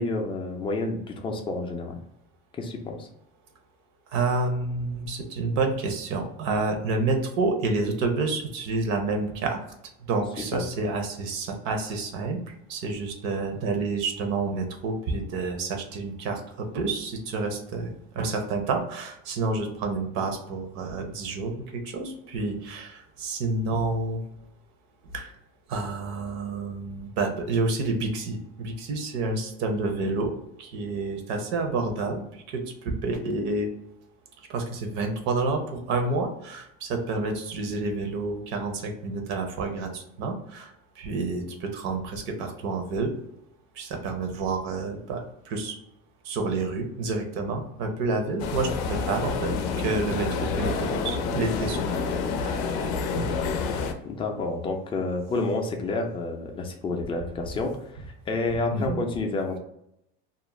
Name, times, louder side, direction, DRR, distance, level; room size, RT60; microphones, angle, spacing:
voice 1, 0.0-2.0 2.6-3.1 10.5-10.6 54.0-57.8 58.3-59.6, left 3 dB, 20° left, 2 dB, 0.4 m, -29 dB
voice 2, 4.1-9.6 10.0-12.4 12.7-24.2 25.1-25.3 25.7-30.3 30.6-33.7 34.5-43.1 43.8-45.8 46.2-52.0 52.4-52.6 53.2-53.3 58.7-59.0, right 3 dB, 65° right, 4 dB, 0.7 m, -29 dB
sound 1, 48.4-53.9, left 5 dB, 75° left, 0.5 m, -28 dB
2.4 x 2.1 x 3.0 m, 0.77 s
supercardioid pair, 120°, 30 cm